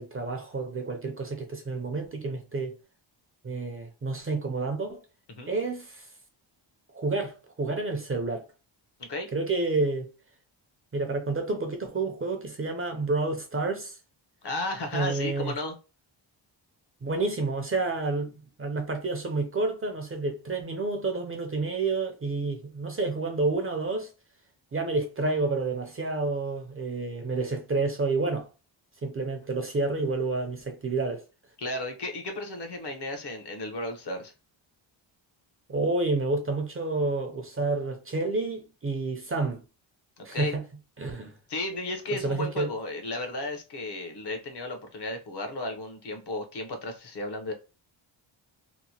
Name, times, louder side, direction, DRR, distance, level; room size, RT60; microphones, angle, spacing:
voice 1, 0.0-2.7 3.4-5.0 5.5-6.1 6.9-8.5 9.3-10.1 10.9-14.0 14.9-15.5 17.0-24.1 24.7-28.5 29.0-31.2 35.7-39.6 40.2-40.6 41.0-41.3 42.1-42.7, right 3 dB, 30° right, 0.5 m, -29 dB
voice 2, 14.4-15.8 31.6-34.3 40.2-40.6 41.5-47.5, left 2 dB, 55° left, 0.9 m, -34 dB
2.9 x 2.1 x 2.8 m
cardioid pair, 95°, 47 cm